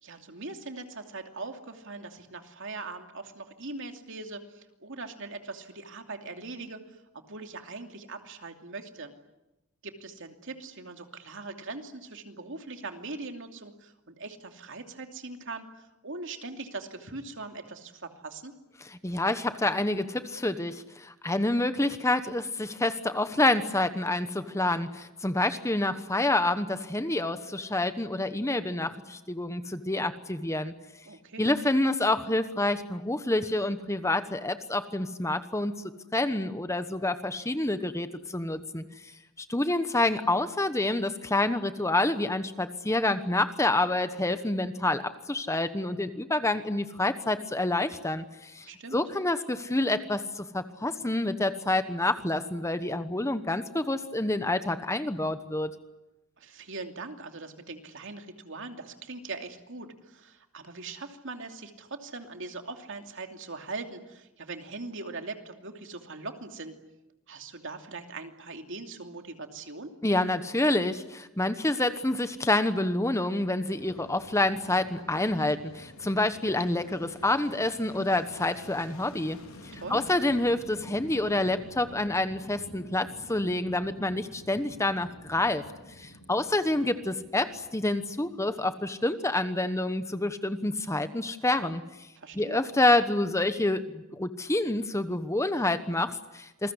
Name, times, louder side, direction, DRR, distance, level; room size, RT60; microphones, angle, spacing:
voice 1, 0.0-9.1 9.8-18.5 31.1-31.5 48.6-49.0 56.4-66.8 67.3-69.9 79.7-80.1 92.2-92.6, right 3 dB, 60° right, 5 dB, 2.7 m, -41 dB
voice 2, 18.9-30.7 31.4-35.8 36.1-38.8 39.4-55.7 70.0-79.4 79.6-85.6 86.0-91.8 92.3-96.7, left 2 dB, 15° left, 10 dB, 1.1 m, -28 dB
Fixed-wing aircraft airplane, 73.7-88.9, left 1 dB, 70° left, 3.9 m, -49 dB
28.0 x 21.5 x 9.8 m, 0.97 s
head